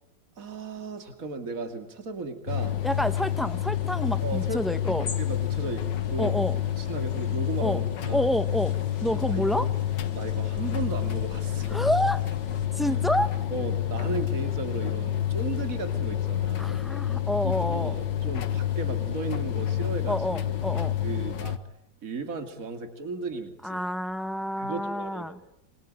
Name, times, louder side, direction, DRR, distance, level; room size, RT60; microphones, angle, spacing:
voice 1, 0.4-2.8 4.2-6.3 6.8-8.3 9.0-9.7 10.1-11.8 12.8-13.0 13.5-16.8 17.4-20.2 21.0-21.6 22.0-23.8 24.6-25.6, right 3 dB, 50° right, 8 dB, 2.9 m, -36 dB
sound 1, 2.5-21.6, left 11 dB, 80° left, 2.0 m, -28 dB
sound 2, 2.8-12.7, left 4 dB, 55° left, 2.9 m, -47 dB
voice 2, 2.8-5.1 6.2-6.6 7.6-7.8 8.1-8.7 9.0-9.7 11.7-12.2 12.8-13.3 16.6-17.9 20.1-20.9 23.6-25.4, equal, ahead, 11 dB, 0.9 m, -28 dB
27.5 x 25.0 x 8.8 m, 0.81 s
omnidirectional pair, 1.9 m